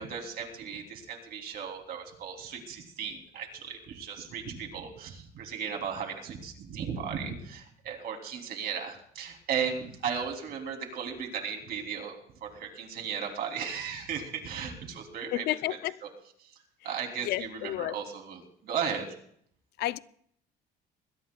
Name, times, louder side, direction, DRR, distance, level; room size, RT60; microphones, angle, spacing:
voice 1, 0.0-16.1 16.4-19.1, right 7 dB, 65° right, 3.0 m, -36 dB
voice 2, 15.3-15.9 17.2-18.0 19.8-20.0, left 16 dB, 75° left, 0.5 m, -31 dB
21.5 x 21.0 x 2.3 m
cardioid pair, 110°, 17 cm